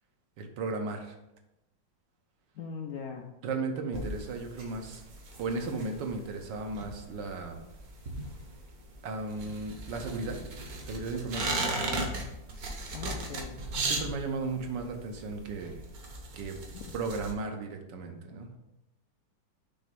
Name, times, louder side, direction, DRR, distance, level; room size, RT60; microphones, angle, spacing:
voice 1, 0.4-1.1 3.4-5.0 5.4-7.6 9.0-10.4 10.8-11.6 13.8-15.8 16.3-16.6 16.9-18.6, right 3 dB, 70° right, 4 dB, 1.4 m, -35 dB
voice 2, 2.6-3.3 12.9-13.6 16.7-16.9, left 6 dB, 70° left, 2 dB, 0.9 m, -40 dB
sound 1, 3.9-17.3, right 2 dB, 55° right, 1.3 m, -37 dB
6.3 x 3.4 x 5.2 m, 0.91 s
omnidirectional pair, 2.1 m